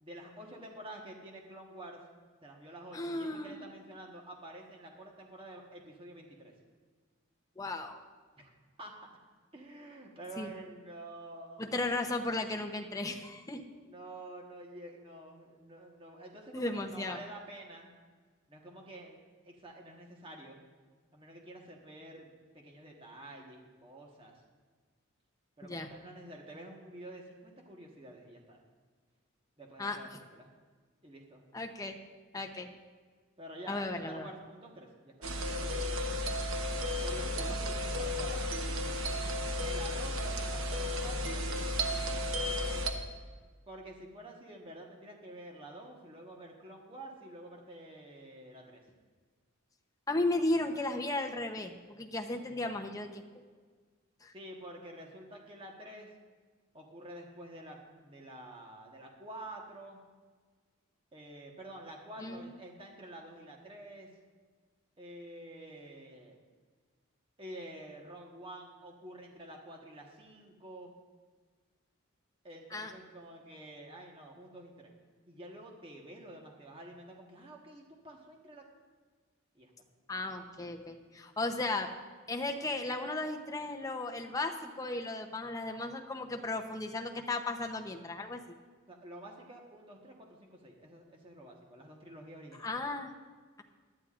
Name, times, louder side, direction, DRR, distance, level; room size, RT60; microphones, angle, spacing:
voice 1, 0.0-2.0 2.4-6.5 8.4-8.5 8.8-8.9 9.5-11.7 13.8-17.9 18.5-20.6 21.1-24.4 25.6-28.6 29.6-30.5 31.0-31.4 33.4-36.1 37.0-38.4 39.6-41.7 43.7-48.8 54.3-56.1 56.7-60.0 61.1-64.1 65.0-66.4 67.4-70.9 72.4-74.9 75.3-78.7 79.5-79.7 88.9-92.7, right 1 dB, 25° right, 0 dB, 1.3 m, -49 dB
voice 2, 2.9-3.6 7.6-8.0 10.4-10.5 11.6-13.6 16.5-17.2 25.6-25.9 29.8-30.0 31.5-32.0 32.3-32.7 33.7-34.3 37.4-37.5 50.1-53.2 54.2-54.3 62.2-62.5 72.7-72.9 80.1-81.9 82.3-88.4 92.6-93.1, left 2 dB, 15° left, 3 dB, 0.8 m, -35 dB
sound 1, 35.2-42.9, equal, 80° right, 1.1 m, -33 dB
19.0 x 12.0 x 2.5 m, 1.5 s
head